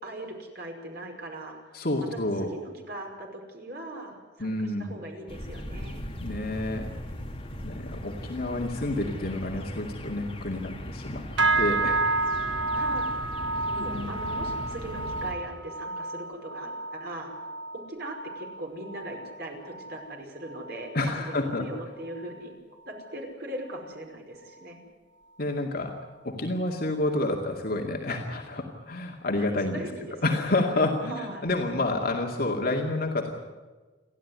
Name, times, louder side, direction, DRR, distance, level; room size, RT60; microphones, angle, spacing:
voice 1, 0.0-1.8 2.1-6.1 12.7-13.1 13.7-17.3 17.7-20.9 21.2-22.5 22.9-24.8 29.4-30.4 31.1-31.5, right 1 dB, 60° right, 2 dB, 5.4 m, -40 dB
voice 2, 1.7-2.5 4.4-4.9 6.2-6.9 7.6-11.2 11.6-12.1 13.9-14.1 20.9-21.7 25.4-26.0 26.2-29.8 30.2-33.4, left 2 dB, 55° left, 0 dB, 2.3 m, -29 dB
sound 1, 5.3-15.3, left 1 dB, 30° left, 2.8 m, -38 dB
sound 2, 11.4-20.9 21.2-21.7 22.1-22.4 23.0-23.1, right 2 dB, 85° right, 1.4 m, -31 dB
30.0 x 12.0 x 9.7 m, 1.3 s
head